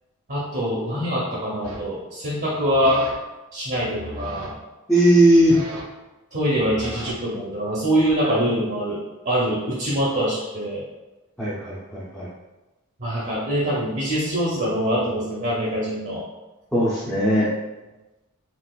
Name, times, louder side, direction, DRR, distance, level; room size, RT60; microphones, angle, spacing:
voice 1, 0.3-3.0 3.5-4.5 6.3-10.8 13.0-16.2, equal, 45° right, -6 dB, 0.6 m, -24 dB
sound 1, 1.6-1.9 2.6-3.1 3.6-4.5 5.3-6.1 6.5-8.4, right 1 dB, 80° right, 0.6 m, -38 dB
voice 2, 4.9-5.6 11.4-12.3 16.7-17.5, right 1 dB, 5° left, -10 dB, 0.5 m, -18 dB
3.8 x 2.3 x 2.3 m, 1.1 s
head